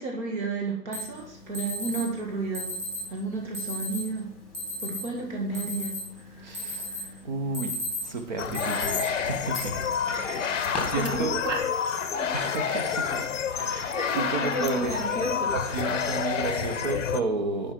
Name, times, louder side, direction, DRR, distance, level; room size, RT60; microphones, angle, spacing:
voice 1, 0.0-2.7 3.1-4.3 4.8-7.2 10.1-11.6 12.1-13.0 13.5-15.8, right 2 dB, 45° right, 2.0 m, -33 dB
Alarm, 0.9-1.0 1.5-2.0 2.5-3.0 3.5-4.0 4.5-5.0 5.4-6.2 6.5-7.1 7.4-8.1 8.5-9.0 9.5-9.6 10.4-10.8, left 3 dB, ahead, 1.6 m, -33 dB
voice 2, 6.4-11.5 12.3-13.3 13.6-15.2 15.5-17.7, right 3 dB, 30° right, 0.8 m, -33 dB
sound 1, 8.4-17.2, left 7 dB, 50° left, 0.8 m, -29 dB
10.0 x 5.1 x 4.3 m
figure-of-eight pair, 145°, 48 cm